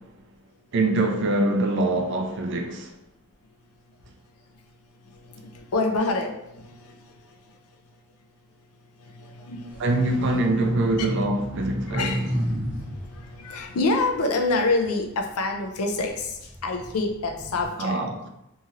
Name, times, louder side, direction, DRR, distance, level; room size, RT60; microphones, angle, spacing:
voice 1, 0.7-2.9 9.8-12.1 17.8-18.3, right 2 dB, 55° right, 0.4 m, -24 dB
voice 2, 5.2-7.4 9.0-11.1 11.9-12.5 12.8-18.0, left 3 dB, 85° left, 0.5 m, -28 dB
sound 1, 9.7-15.3 15.8-17.7, equal, 10° right, 0.6 m, -32 dB
2.9 x 2.7 x 2.4 m
head